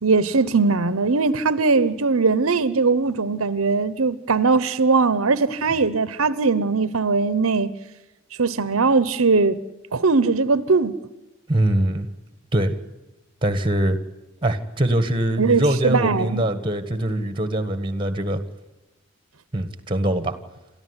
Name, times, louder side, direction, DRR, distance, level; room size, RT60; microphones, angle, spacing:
voice 1, 0.0-7.7 8.4-9.6 9.9-11.0 15.4-16.4, right 4 dB, 90° right, 1.0 m, -20 dB
voice 2, 11.5-12.1 12.5-12.7 13.4-14.0 14.4-18.4 19.5-20.3, right 1 dB, 25° right, 1.7 m, -22 dB
28.0 x 14.0 x 9.9 m
head